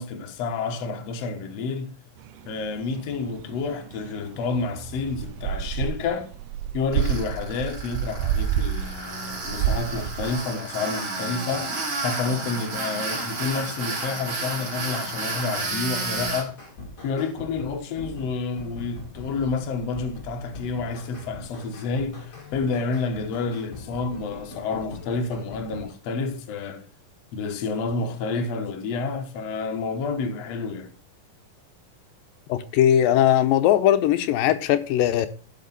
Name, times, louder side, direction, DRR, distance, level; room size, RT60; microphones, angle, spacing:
voice 1, 0.0-1.9 2.5-6.3 6.7-11.7 12.0-16.6 17.0-26.9 27.3-30.9, left 4 dB, 60° left, 2.0 m, -29 dB
sound 1, 2.2-9.0 9.3-10.3, right 9 dB, 75° right, 2.0 m, -29 dB
Tools, 6.9-16.4, right 2 dB, 45° right, 3.9 m, -31 dB
sound 2, 15.8-25.9, left 2 dB, 25° left, 2.2 m, -41 dB
voice 2, 32.5-35.3, left 11 dB, 90° left, 2.5 m, -19 dB
11.5 x 6.3 x 4.0 m
omnidirectional pair, 4.0 m